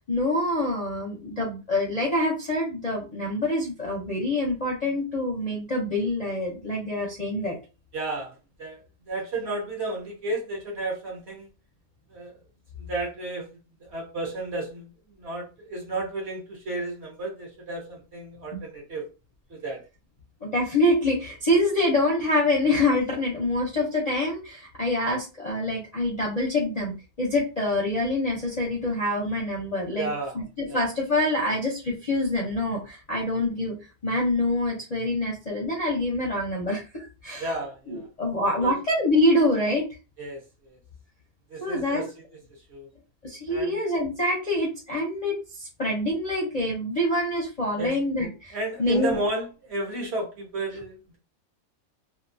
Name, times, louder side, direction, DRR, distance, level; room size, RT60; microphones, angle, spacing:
voice 1, 0.1-7.5 18.5-18.6 20.4-30.1 30.3-33.8 34.0-37.6 37.9-39.8 41.6-42.0 43.2-49.2, left 1 dB, 40° left, -3 dB, 0.5 m, -26 dB
voice 2, 7.9-8.8 9.1-11.5 12.1-12.3 12.8-13.5 13.8-14.9 15.2-19.1 19.5-19.8 29.9-30.3 30.7-30.9 37.4-38.1 38.6-38.8 40.2-40.8 41.5-42.2 42.7-42.9 43.5-43.8 47.8-48.0 48.5-51.2, right 2 dB, 50° right, -1 dB, 1.1 m, -32 dB
2.8 x 2.4 x 2.6 m, 0.31 s
omnidirectional pair, 1.5 m